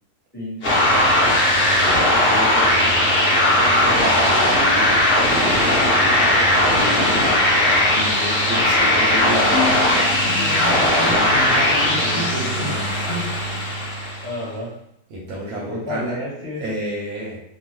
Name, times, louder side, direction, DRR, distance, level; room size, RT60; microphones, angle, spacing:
voice 1, 0.3-0.8 3.8-4.7 14.2-14.7 15.5-16.6, left 1 dB, 10° left, -8 dB, 0.7 m, -31 dB
sound 1, 0.6-14.3, left 1 dB, 45° left, 0.8 m, -18 dB
voice 2, 1.5-4.8 5.5-7.3 7.9-13.0 15.1-16.1 16.6-17.4, right 1 dB, 70° right, -4 dB, 1.0 m, -31 dB
Bowed string instrument, 8.8-13.7, left 3 dB, 75° left, 1.1 m, -30 dB
2.8 x 2.3 x 3.0 m, 0.79 s
omnidirectional pair, 1.9 m